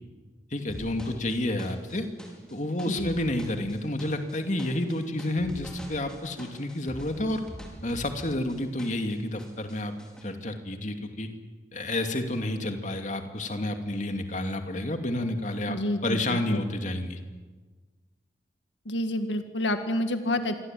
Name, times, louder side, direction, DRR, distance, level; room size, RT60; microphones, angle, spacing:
voice 1, 0.5-2.1 2.5-7.4 7.8-9.9 10.2-11.3 11.7-15.8 16.0-17.2, left 1 dB, 40° left, 5 dB, 2.6 m, -30 dB
sound 1, 0.7-9.1 9.4-10.2, equal, 5° left, 5.1 m, -44 dB
voice 2, 15.7-16.6 18.9-20.6, left 1 dB, 85° left, 7 dB, 1.9 m, -29 dB
27.5 x 23.0 x 9.2 m, 1.4 s
head